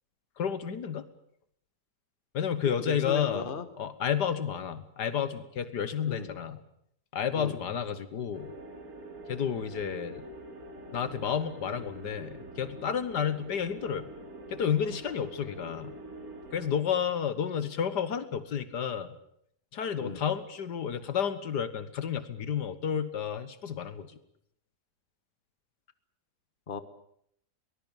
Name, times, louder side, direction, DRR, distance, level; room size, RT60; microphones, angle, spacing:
voice 1, 0.4-1.0 2.3-3.5 3.8-6.6 7.1-8.5 9.3-10.2 10.9-14.1 14.5-15.9 16.5-19.2 19.7-24.1, left 8 dB, 80° left, 13 dB, 1.9 m, -31 dB
voice 2, 2.6-3.7 6.0-6.3 7.4-7.6 20.0-20.2 26.7-26.8, left 5 dB, 30° left, 11 dB, 1.6 m, -37 dB
sound 1, 8.3-16.8, right 1 dB, 60° right, 3.1 m, -45 dB
23.0 x 19.5 x 9.0 m, 0.70 s
omnidirectional pair, 1.8 m